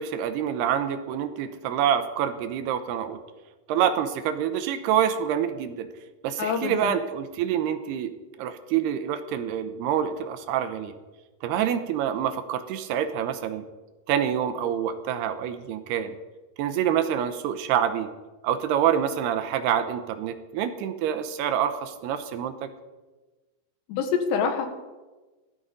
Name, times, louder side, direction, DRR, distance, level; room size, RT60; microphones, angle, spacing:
voice 1, 0.0-3.2 3.7-5.9 6.2-8.1 8.4-11.0 11.4-13.6 14.1-16.2 16.6-18.1 18.4-22.7, right 9 dB, 80° right, 9 dB, 2.9 m, -26 dB
voice 2, 6.4-6.9 23.9-24.7, left 6 dB, 80° left, 6 dB, 3.7 m, -26 dB
16.5 x 13.0 x 5.2 m, 1.2 s
omnidirectional pair, 4.8 m